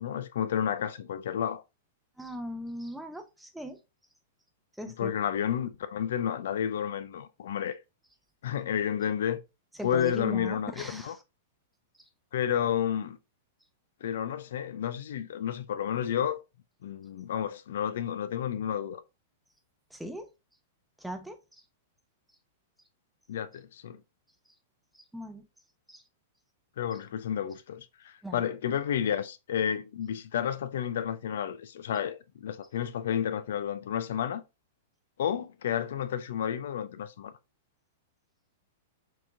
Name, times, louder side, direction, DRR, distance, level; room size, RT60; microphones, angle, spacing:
voice 1, 0.0-1.6 4.9-7.8 8.4-9.4 9.8-11.1 12.3-13.2 14.0-16.4 16.8-19.0 23.3-24.0 26.8-34.4 35.2-37.3, left 9 dB, 75° left, 0.3 m, -31 dB
voice 2, 2.2-3.8 4.8-5.1 9.8-11.2 19.9-20.3 21.0-21.6 24.9-25.4 25.9-26.0 28.2-28.4, equal, 5° right, 0.6 m, -39 dB
4.4 x 2.8 x 2.5 m
hypercardioid pair, 120°, 0 cm